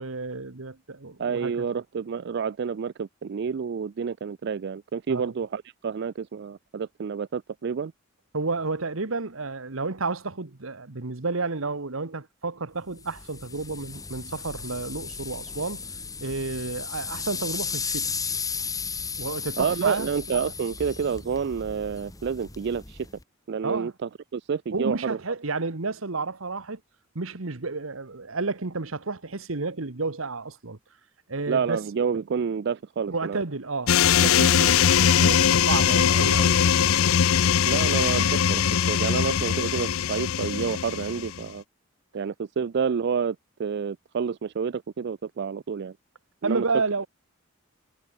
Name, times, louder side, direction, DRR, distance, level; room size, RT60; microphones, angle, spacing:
voice 1, 0.0-1.5 5.1-5.3 8.3-15.8 16.2-18.1 19.2-20.1 23.6-23.9 24.7-26.8 27.1-30.8 31.3-31.8 33.1-36.7 46.4-47.1, right 3 dB, 75° right, 1.4 m, -31 dB
voice 2, 1.2-7.9 19.6-23.1 23.5-25.2 31.5-33.4 37.7-41.6 42.1-45.9 46.4-46.6, right 6 dB, 55° right, 0.4 m, -29 dB
sound 1, 13.0-23.2, left 5 dB, 15° left, 2.0 m, -35 dB
sound 2, 33.9-41.4, left 8 dB, 85° left, 0.5 m, -21 dB
head